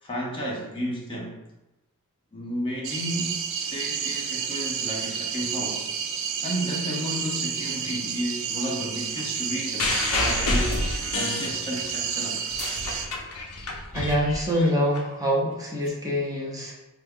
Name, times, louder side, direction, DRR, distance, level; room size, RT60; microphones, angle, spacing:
voice 1, 0.0-1.4 2.3-5.8 6.4-10.7 11.1-12.5, equal, 25° left, -3 dB, 0.6 m, -32 dB
sound 1, 2.8-13.1, right 7 dB, 60° right, 0.4 m, -31 dB
sound 2, 9.8-12.0 12.4-15.0 15.9-16.0, left 2 dB, 85° left, 0.6 m, -28 dB
voice 2, 13.9-16.7, equal, 15° right, -4 dB, 0.7 m, -25 dB
4.2 x 2.3 x 3.5 m, 0.96 s
head